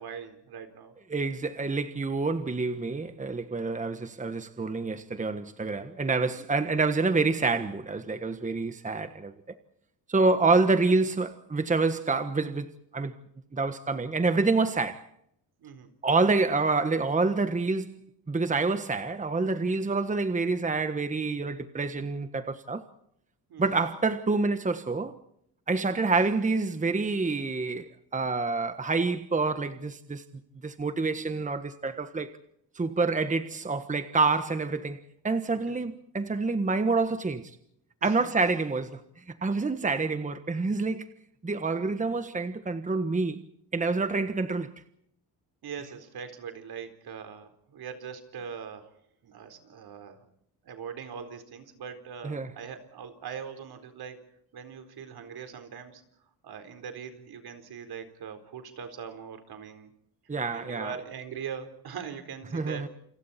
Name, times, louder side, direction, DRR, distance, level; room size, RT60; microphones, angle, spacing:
voice 1, 0.0-1.0 6.4-6.5 15.6-15.9 23.5-23.7 35.7-35.8 38.0-38.2 45.6-48.9 49.2-50.3 50.6-54.3 54.5-56.0 56.4-59.9 60.5-62.9, right 7 dB, 70° right, 4.2 m, -41 dB
voice 2, 1.1-9.5 10.1-13.1 13.5-15.0 16.0-17.9 18.3-22.8 23.6-25.1 25.7-30.2 30.6-32.3 32.7-35.0 35.2-37.4 38.0-39.0 39.4-41.1 41.4-43.4 43.7-44.7 52.2-52.5 60.3-60.9 62.5-62.9, right 3 dB, 20° right, 1.4 m, -27 dB
29.0 x 28.0 x 4.3 m
cardioid pair, 130°, 40 cm